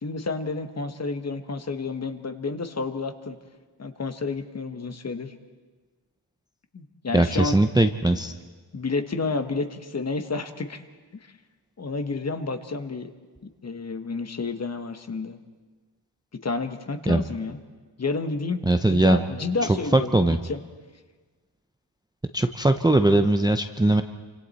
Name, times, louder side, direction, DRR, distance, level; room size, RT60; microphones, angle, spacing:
voice 1, 0.0-3.4 3.8-5.3 6.7-7.6 8.7-10.8 11.1-11.3 11.8-13.1 13.6-15.4 16.4-17.6 18.0-18.6 18.9-20.6, left 3 dB, 35° left, 8 dB, 1.2 m, -30 dB
voice 2, 7.1-8.3 17.1-17.2 18.6-19.2 19.9-20.4 22.3-24.0, right 2 dB, 10° right, 7 dB, 0.6 m, -20 dB
28.5 x 26.0 x 4.2 m, 1.4 s
wide cardioid pair, 145°, 46 cm